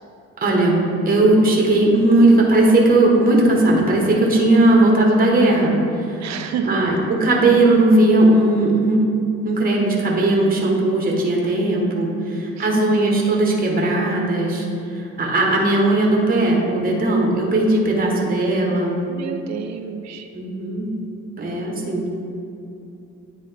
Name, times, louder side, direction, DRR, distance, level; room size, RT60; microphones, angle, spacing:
voice 1, 0.4-0.8 1.1-9.0 9.4-19.0 20.3-20.9 21.4-22.1, right 2 dB, 30° right, -1 dB, 1.2 m, -17 dB
voice 2, 6.2-6.8 12.5-12.8 18.1-18.4 19.1-20.3, right 7 dB, 60° right, 6 dB, 0.6 m, -29 dB
9.4 x 3.7 x 3.3 m, 2.8 s
cardioid pair, 90°, 30 cm